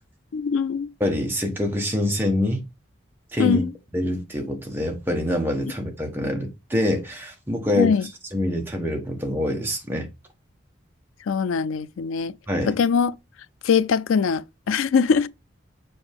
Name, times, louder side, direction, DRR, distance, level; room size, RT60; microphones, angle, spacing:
voice 1, 0.3-0.9 3.4-3.7 7.8-8.1 11.3-12.3 12.7-13.1 13.6-15.3, left 6 dB, 85° left, 0.4 m, -22 dB
voice 2, 1.0-2.6 3.3-3.6 3.9-7.9 8.3-10.1 12.5-12.8, left 1 dB, 10° right, 1.2 m, -25 dB
6.9 x 4.3 x 3.5 m
head